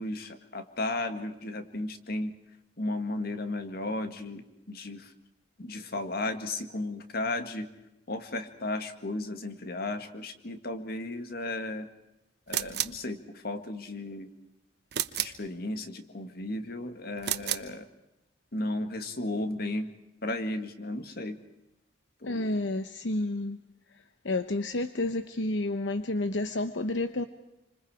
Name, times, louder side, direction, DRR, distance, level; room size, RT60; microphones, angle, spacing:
voice 1, 0.0-2.3 2.8-5.1 5.6-7.7 8.1-11.9 12.5-14.3 15.2-17.9 18.5-19.9 20.2-21.4 22.2-22.6, left 2 dB, 55° left, 7 dB, 2.0 m, -34 dB
sound 1, 12.5-13.0 14.9-15.4 17.2-17.7, right 11 dB, 60° right, 1.0 m, -31 dB
voice 2, 22.3-23.6 24.2-27.2, left 2 dB, 80° left, 9 dB, 0.9 m, -30 dB
28.0 x 26.0 x 4.9 m, 0.91 s
head